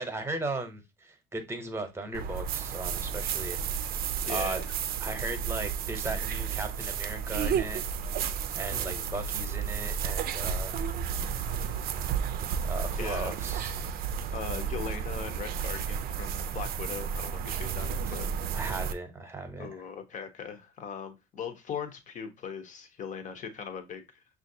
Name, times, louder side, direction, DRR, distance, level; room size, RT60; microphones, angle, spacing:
voice 1, 0.0-3.6 4.3-4.6 5.0-7.8 8.5-10.8 11.7-11.8 12.6-13.7 18.1-18.2 18.5-19.9, right 2 dB, 15° right, 0.9 m, -37 dB
sound 1, 2.1-18.9, right 7 dB, 60° right, 0.4 m, -32 dB
voice 2, 4.2-4.6 8.7-9.0 12.6-13.3 14.3-18.3 19.6-24.0, left 7 dB, 45° left, 0.8 m, -39 dB
5.6 x 2.5 x 2.7 m
cardioid pair, 110°, 17 cm